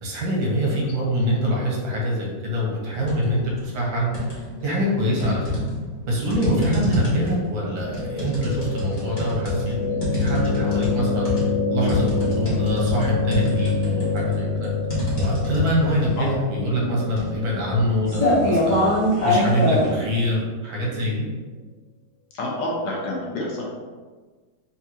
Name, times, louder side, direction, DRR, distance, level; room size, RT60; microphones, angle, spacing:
voice 1, 0.0-4.1 4.6-5.5 6.1-11.3 11.7-14.7 15.2-18.9 19.2-21.2, equal, 80° right, -3 dB, 1.7 m, -24 dB
sound 1, 2.9-3.3 3.7-4.6 5.2-19.9, left 1 dB, 30° left, 1.2 m, -25 dB
sound 2, 7.8-19.9, left 4 dB, 50° right, 1.4 m, -27 dB
voice 2, 22.3-23.7, left 1 dB, 70° left, -3 dB, 1.4 m, -28 dB
3.6 x 3.5 x 2.8 m, 1.4 s
omnidirectional pair, 2.1 m